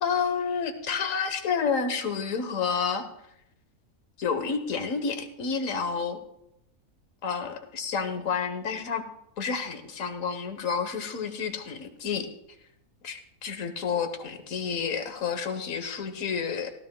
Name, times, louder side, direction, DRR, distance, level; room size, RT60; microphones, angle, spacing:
voice 1, 0.0-3.0 4.2-6.2 7.2-9.0 9.4-12.3 13.0-16.7, left 6 dB, 65° left, 7 dB, 1.5 m, -30 dB
18.5 x 13.5 x 2.2 m, 0.79 s
omnidirectional pair, 1.5 m